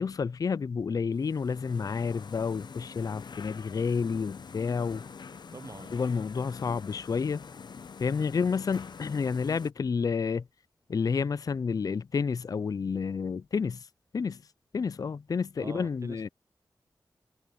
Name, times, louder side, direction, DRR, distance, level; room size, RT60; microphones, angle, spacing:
voice 1, 0.0-5.0 5.9-7.4 8.0-10.5 10.9-13.9 14.1-14.4 14.7-16.3, left 5 dB, 50° left, 0.4 m, -30 dB
sound 1, 1.1-9.7, left 5 dB, 70° left, 0.8 m, -45 dB
voice 2, 5.5-6.0 15.6-16.3, right 3 dB, 45° right, 0.8 m, -44 dB
wide cardioid pair, 75°, 8 cm